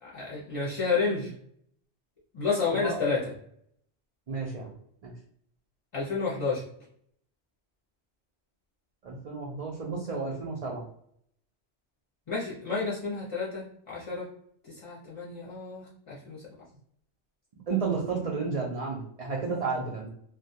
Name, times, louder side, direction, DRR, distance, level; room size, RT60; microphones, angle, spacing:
voice 1, 0.0-1.3 2.3-3.3 5.9-6.6 12.3-14.3 14.7-16.6, left 4 dB, 40° left, -6 dB, 0.5 m, -30 dB
voice 2, 4.3-4.7 5.0-5.1 9.0-10.8 17.7-20.1, right 4 dB, 55° right, -3 dB, 0.4 m, -32 dB
2.2 x 2.2 x 2.6 m, 0.67 s
omnidirectional pair, 1.2 m